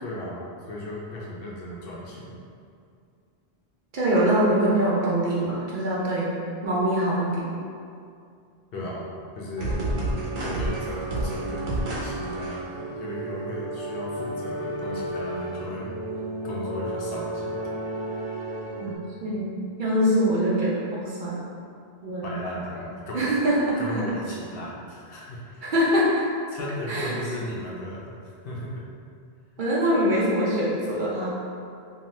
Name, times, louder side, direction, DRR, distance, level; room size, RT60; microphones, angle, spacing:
voice 1, 0.0-2.2 8.7-9.0 9.3-9.8 10.3-15.9 16.4-17.7 22.2-23.4 23.8-25.7 26.5-28.1 28.4-28.8, left 1 dB, 70° left, -5 dB, 0.8 m, -36 dB
voice 2, 3.9-6.3 6.6-7.5 18.8-18.9 19.2-21.3 22.0-22.3 23.1-24.0 25.6-26.1 26.9-27.1 29.6-31.3, right 1 dB, 55° right, -6 dB, 0.7 m, -23 dB
sound 1, 9.6-19.0, right 1 dB, 80° right, 0.9 m, -31 dB
2.7 x 2.3 x 3.1 m, 2.4 s
omnidirectional pair, 1.1 m